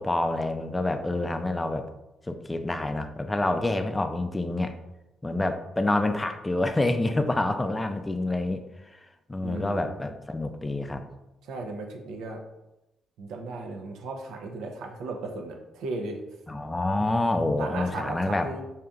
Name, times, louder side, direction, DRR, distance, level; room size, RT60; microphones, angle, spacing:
voice 1, 0.0-1.9 2.3-4.7 5.2-9.0 9.3-11.1 16.5-18.5, left 2 dB, 15° left, 8 dB, 0.4 m, -27 dB
voice 2, 9.4-9.9 11.4-12.4 13.2-16.2 17.6-18.6, right 3 dB, 85° right, 3 dB, 0.6 m, -36 dB
4.9 x 2.8 x 2.3 m, 0.95 s
cardioid pair, 90°, 0 cm